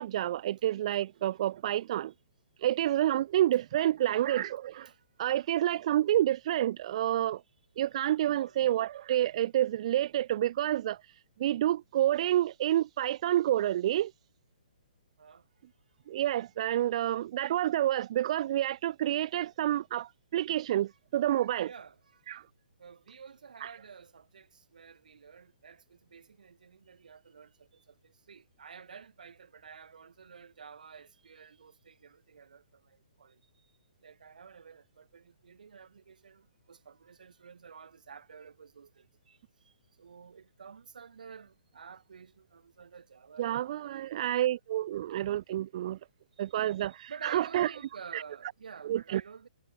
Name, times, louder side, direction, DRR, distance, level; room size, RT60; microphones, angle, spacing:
voice 1, 0.0-2.1 2.6-4.9 5.2-7.4 7.8-11.0 11.4-14.1 16.1-21.7 22.3-22.4 23.6-23.7 43.4-46.0 46.4-47.7 48.1-48.2 48.8-49.2, right 12 dB, 50° right, 0.5 m, -29 dB
voice 2, 3.8-4.4 4.9-5.0 8.3-8.6 15.2-15.4 21.6-22.2 22.8-33.4 34.0-39.4 39.6-39.7 40.0-43.9 44.3-44.4 46.4-49.5, right 6 dB, 75° right, 2.4 m, -51 dB
hypercardioid pair, 135°, 4 cm